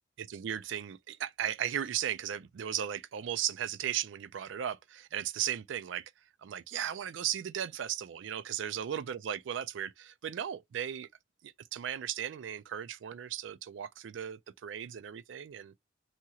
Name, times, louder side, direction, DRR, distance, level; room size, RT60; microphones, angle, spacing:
voice 1, 0.2-6.1 6.4-11.1 11.4-15.7, right 10 dB, 85° right, 0.4 m, -36 dB
2.8 x 2.3 x 2.8 m
head